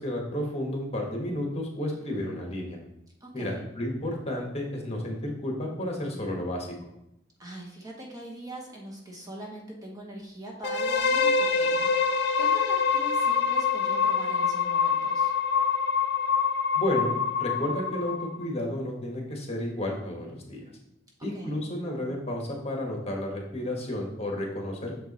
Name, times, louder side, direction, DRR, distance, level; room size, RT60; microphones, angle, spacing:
voice 1, 0.0-2.8 3.3-6.9 16.7-17.1 17.4-20.6 21.2-25.0, left 1 dB, 35° left, 0 dB, 1.4 m, -32 dB
voice 2, 3.2-3.6 7.4-15.3 21.3-21.6, right 1 dB, 20° right, -1 dB, 1.2 m, -42 dB
sound 1, 10.6-18.4, left 5 dB, 65° left, 0.5 m, -25 dB
6.7 x 4.6 x 4.1 m, 0.84 s
head